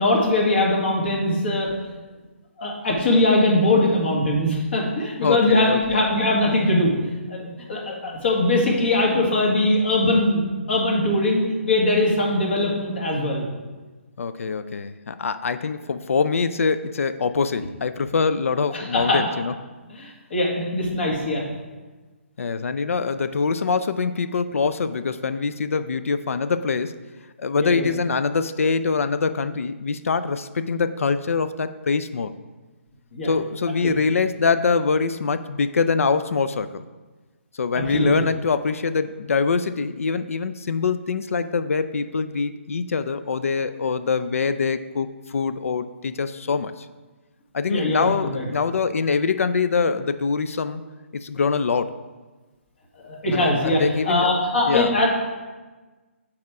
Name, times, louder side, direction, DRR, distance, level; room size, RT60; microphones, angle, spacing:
voice 1, 0.0-1.7 2.6-6.9 7.3-7.4 7.7-13.5 18.7-19.2 19.9-21.4 27.6-27.9 33.1-33.3 33.8-33.9 37.9-38.1 47.7-48.0 48.3-48.5 53.0-55.1, left 1 dB, 55° left, -2 dB, 1.9 m, -21 dB
voice 2, 5.2-6.0 14.2-19.5 22.4-27.0 27.4-32.3 33.2-36.8 37.5-46.9 47.5-50.8 51.1-51.9 53.3-54.3 54.7-54.9, left 5 dB, 80° left, 12 dB, 0.4 m, -24 dB
6.5 x 4.2 x 4.7 m, 1.3 s
hypercardioid pair, 160°, 7 cm